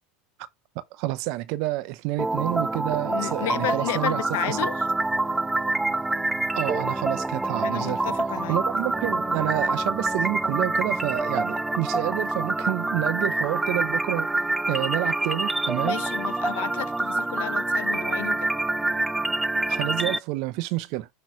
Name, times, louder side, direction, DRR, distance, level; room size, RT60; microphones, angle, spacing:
voice 1, 0.9-4.6 6.5-14.3 14.7-16.0 19.7-21.1, right 18 dB, 60° right, 0.8 m, -29 dB
sound 1, 2.2-20.2, right 2 dB, 10° right, 0.4 m, -26 dB
voice 2, 3.0-4.9 7.6-8.6 15.8-18.5, left 16 dB, 75° left, 0.5 m, -32 dB
6.1 x 3.2 x 4.9 m
hypercardioid pair, 90°, 0 cm